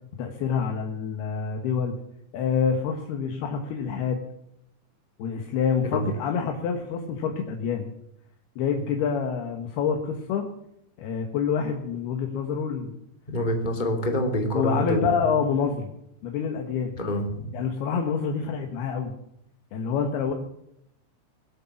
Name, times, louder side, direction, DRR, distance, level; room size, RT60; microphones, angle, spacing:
voice 1, 0.2-1.9 2.3-4.2 5.2-7.9 8.6-10.5 11.0-13.0 14.5-15.9 16.2-17.0 17.5-19.1 19.7-20.3, left 6 dB, 65° left, 4 dB, 3.0 m, -27 dB
voice 2, 13.3-15.0 16.9-17.5, equal, 15° left, 3 dB, 1.5 m, -26 dB
20.0 x 8.4 x 7.2 m, 0.78 s
omnidirectional pair, 5.6 m